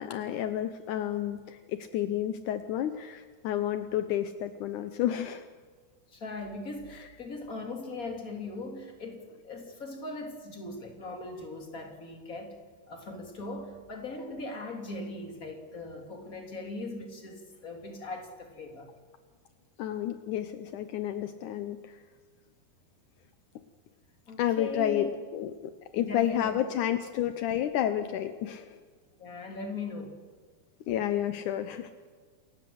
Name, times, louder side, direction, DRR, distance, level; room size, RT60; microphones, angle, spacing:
voice 1, 0.0-5.5 19.8-22.0 24.4-28.8 30.9-31.9, left 11 dB, 80° left, 10 dB, 1.8 m, -31 dB
voice 2, 6.1-12.6 12.9-18.9 24.3-25.1 25.9-26.6 29.2-30.2, left 3 dB, 20° left, 3 dB, 3.1 m, -39 dB
28.0 x 16.0 x 7.9 m, 1.5 s
omnidirectional pair, 4.7 m